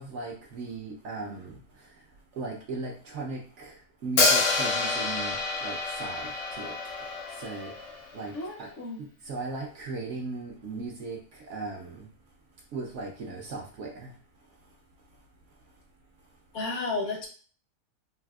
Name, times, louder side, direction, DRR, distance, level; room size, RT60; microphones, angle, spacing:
voice 1, 0.0-1.6 2.4-3.7 4.0-6.3 6.6-6.7 7.4-7.7 8.1-8.3 8.6-8.7 9.0-11.2 11.5-12.0 12.7-14.1, right 3 dB, 65° right, 0 dB, 0.8 m, -37 dB
Hi-hat, 4.2-8.1, left 3 dB, 80° left, 1.2 m, -27 dB
voice 2, 8.3-9.0 16.5-17.3, left 3 dB, 65° left, 1 dB, 0.8 m, -32 dB
3.4 x 2.4 x 2.3 m, 0.42 s
omnidirectional pair, 1.6 m